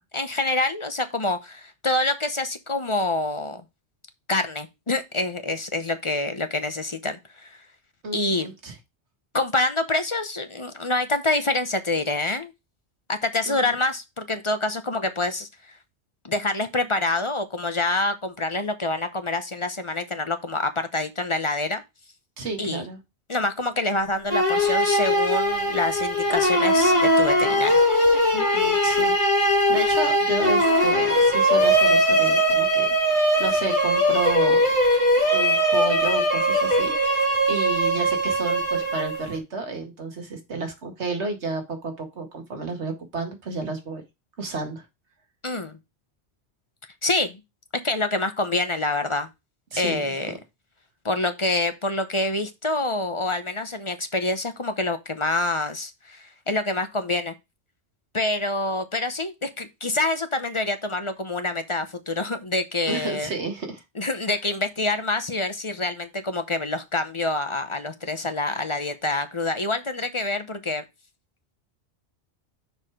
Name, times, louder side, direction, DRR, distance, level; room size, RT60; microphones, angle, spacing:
voice 1, 0.1-3.6 4.3-7.6 8.1-8.5 9.3-12.5 13.1-15.5 16.2-21.8 22.6-22.8 23.3-27.9 45.4-45.8 47.0-47.4 47.8-49.3 49.8-50.3 51.0-57.3 58.1-63.3 64.0-70.8, left 2 dB, 30° left, 0.8 m, -26 dB
voice 2, 8.0-8.8 13.5-13.7 22.4-23.0 28.3-29.1 29.4-34.7 35.3-44.0 44.4-44.8 49.7-50.1 62.9-63.8, right 3 dB, 80° right, 2.0 m, -31 dB
sound 1, 24.3-39.4, equal, 25° right, 3.2 m, -20 dB
6.3 x 4.8 x 4.8 m
omnidirectional pair, 1.1 m